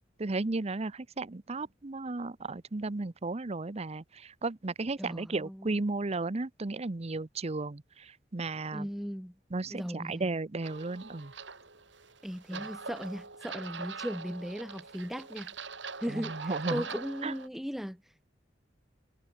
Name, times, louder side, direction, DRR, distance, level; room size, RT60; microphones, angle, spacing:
voice 1, 0.2-8.9 9.5-11.3 12.5-12.7 16.1-16.8 17.2-17.3, right 3 dB, 35° right, 0.7 m, -34 dB
voice 2, 5.0-5.8 8.7-9.3 9.7-10.2 12.2-15.5 16.0-18.0, equal, ahead, 1.6 m, -37 dB
sound 1, 10.6-17.5, right 5 dB, 70° right, 4.9 m, -43 dB
head